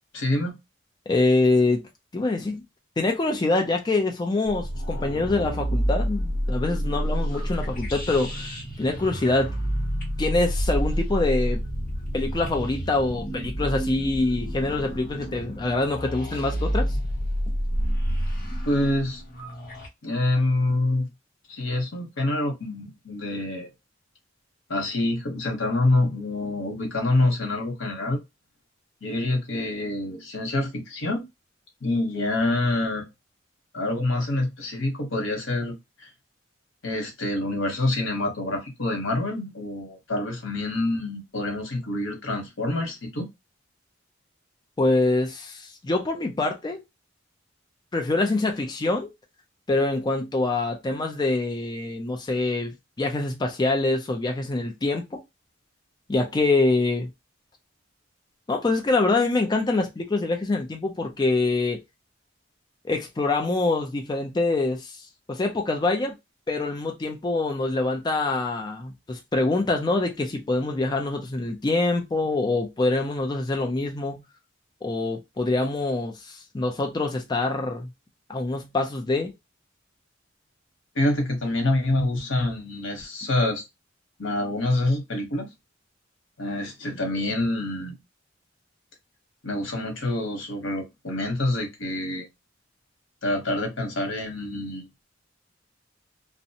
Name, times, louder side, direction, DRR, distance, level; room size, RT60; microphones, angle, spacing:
voice 1, 0.1-0.6 18.6-19.2 20.0-21.1 21.5-23.7 24.7-28.2 29.0-31.2 31.8-33.0 33.7-36.1 36.8-43.3 80.9-83.7 84.2-85.5 86.4-88.0 89.4-92.3 93.2-94.9, left 2 dB, 80° left, 1.0 m, -26 dB
voice 2, 1.1-1.8 2.1-2.6 3.0-9.6 10.2-11.6 12.1-17.0 44.8-46.8 47.9-49.1 49.7-55.2 56.1-57.1 58.5-61.8 62.8-66.1 66.5-74.2 74.8-77.9 78.3-79.3, left 2 dB, 20° left, 0.4 m, -25 dB
sound 1, 4.5-19.9, equal, 50° left, 0.9 m, -29 dB
2.5 x 2.1 x 2.7 m
head